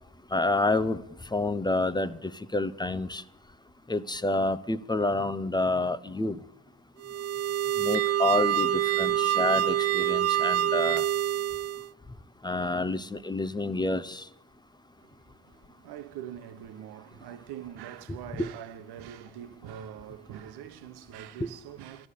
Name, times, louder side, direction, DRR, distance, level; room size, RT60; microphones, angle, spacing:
voice 1, 0.3-1.0 1.3-3.2 3.9-6.4 7.8-11.0 12.4-14.3 18.4-18.5 21.4-21.5, left 2 dB, 10° left, 0.8 m, -28 dB
sound 1, 7.0-11.9, right 11 dB, 40° right, 0.5 m, -26 dB
voice 2, 15.0-22.1, right 10 dB, 70° right, 1.2 m, -43 dB
12.5 x 11.0 x 8.4 m
supercardioid pair, 65°, 40 cm